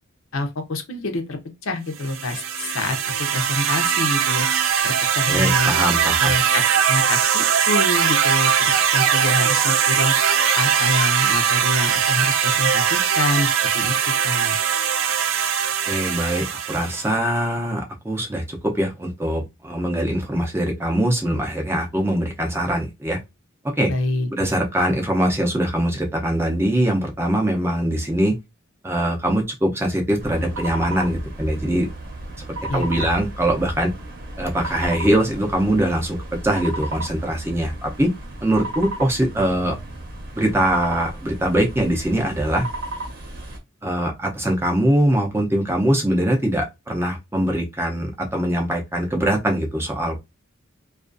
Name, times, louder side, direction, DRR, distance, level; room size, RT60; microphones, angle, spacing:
voice 1, 0.3-4.5 4.8-5.7 6.2-10.1 10.6-13.9 14.2-14.6 23.9-24.3 32.7-33.0, left 2 dB, 85° left, 0.6 m, -26 dB
sound 1, 2.0-17.1, right 8 dB, 75° right, 0.4 m, -20 dB
voice 2, 5.3-6.3 15.9-23.2 23.8-23.9 24.3-28.3 28.8-31.9 32.7-33.9 34.4-36.2 36.4-38.1 38.4-39.8 40.4-42.7 43.8-50.2, right 1 dB, 10° right, 0.5 m, -22 dB
sound 2, 30.2-43.6, right 2 dB, 45° right, 0.8 m, -34 dB
2.4 x 2.3 x 2.5 m
head